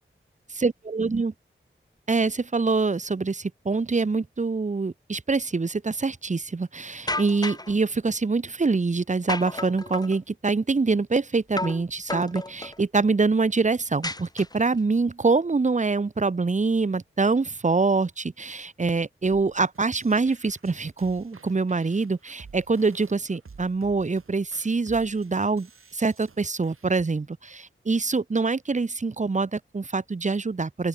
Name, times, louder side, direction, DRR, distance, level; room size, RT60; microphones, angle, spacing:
voice 1, 0.6-1.3 2.1-30.9, right 4 dB, 35° right, 0.8 m, -25 dB
sound 1, 7.1-7.7 9.3-10.2 11.6-11.8 12.1-12.8 14.0-14.8, left 2 dB, 20° left, 1.0 m, -32 dB
sound 2, 19.3-27.0, right 5 dB, 80° right, 3.1 m, -52 dB
open air
wide cardioid pair, 55°, 21 cm